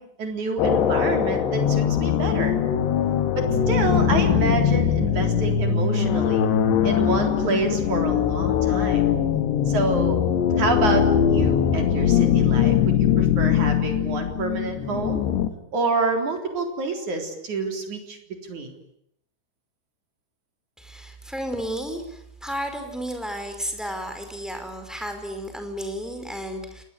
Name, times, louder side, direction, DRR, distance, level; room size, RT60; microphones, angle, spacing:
voice 1, 0.0-2.6 3.3-6.5 6.8-9.1 9.7-10.2 10.6-15.2 15.7-18.2 18.4-18.7, right 3 dB, 40° right, 4 dB, 4.9 m, -27 dB
sound 1, 0.6-15.5, left 9 dB, 70° left, 3.7 m, -21 dB
voice 2, 20.8-26.8, equal, ahead, 6 dB, 4.5 m, -33 dB
28.0 x 20.0 x 9.8 m, 0.75 s
omnidirectional pair, 5.4 m